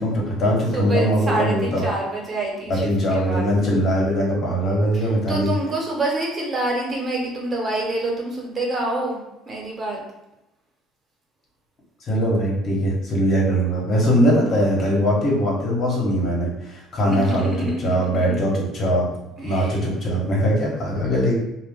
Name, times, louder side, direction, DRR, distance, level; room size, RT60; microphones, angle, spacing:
voice 1, 0.0-1.9 2.7-5.5 12.1-19.1 19.4-21.3, equal, 50° left, -3 dB, 1.2 m, -21 dB
voice 2, 0.7-3.5 4.9-9.2 9.5-10.0 17.0-18.4 19.4-19.8, right 2 dB, 35° right, -2 dB, 1.1 m, -27 dB
2.5 x 2.3 x 3.6 m, 0.91 s
supercardioid pair, 75°, 0 cm